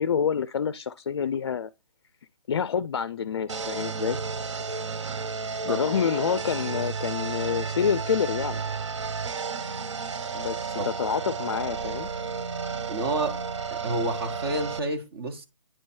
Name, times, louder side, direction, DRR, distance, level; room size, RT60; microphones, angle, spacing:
voice 1, 0.0-1.7 2.5-4.2 5.6-8.6 10.3-12.1, left 7 dB, 50° left, 0.4 m, -27 dB
sound 1, 3.5-14.8, right 5 dB, 60° right, 0.6 m, -32 dB
voice 2, 12.9-13.4 13.7-15.5, right 2 dB, 45° right, 1.3 m, -30 dB
8.8 x 3.0 x 4.4 m
figure-of-eight pair, 145°, 17 cm